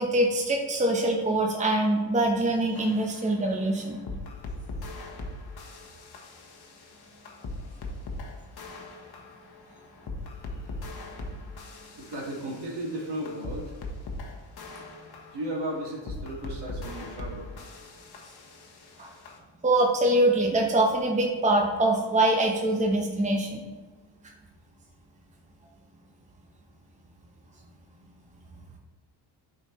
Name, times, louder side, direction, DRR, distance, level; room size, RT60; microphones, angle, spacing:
voice 1, 0.0-4.0 19.0-19.1 19.6-23.6, right 1 dB, 15° right, 0 dB, 0.9 m, -24 dB
sound 1, 2.7-19.4, left 2 dB, 55° left, 1.2 m, -40 dB
voice 2, 12.0-13.7 15.3-17.5, right 1 dB, 60° right, -2 dB, 2.1 m, -35 dB
8.7 x 4.6 x 3.1 m, 1.3 s
cardioid pair, 75°, 46 cm